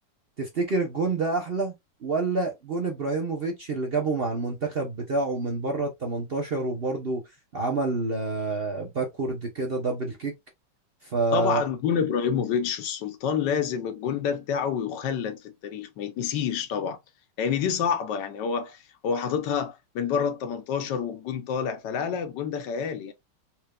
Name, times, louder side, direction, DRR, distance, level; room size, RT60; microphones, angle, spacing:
voice 1, 0.4-1.7 2.0-7.2 7.5-10.3 11.0-11.6, right 3 dB, 45° right, 0.8 m, -28 dB
voice 2, 11.3-17.0 17.4-23.1, left 7 dB, 80° left, 1.4 m, -28 dB
4.4 x 3.3 x 2.3 m
omnidirectional pair, 1.9 m